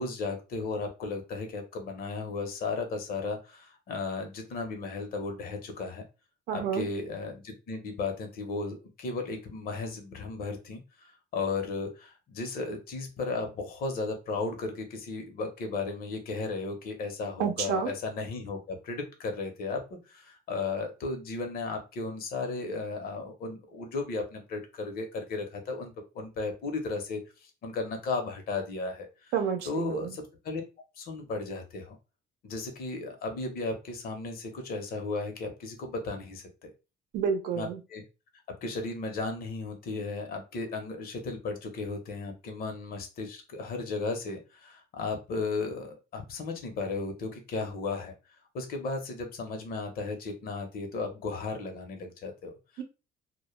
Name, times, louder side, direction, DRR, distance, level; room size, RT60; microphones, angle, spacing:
voice 1, 0.0-6.0 6.5-29.3 29.6-30.6 31.0-32.0 32.4-36.7 37.5-38.0 38.6-48.1 48.5-52.8, left 3 dB, 60° left, 4 dB, 0.8 m, -35 dB
voice 2, 6.5-6.9 17.4-17.9 29.3-30.2 37.1-37.8 52.8-52.9, right 7 dB, 80° right, 5 dB, 0.6 m, -29 dB
2.2 x 2.1 x 3.0 m, 0.29 s
cardioid pair, 110°, 17 cm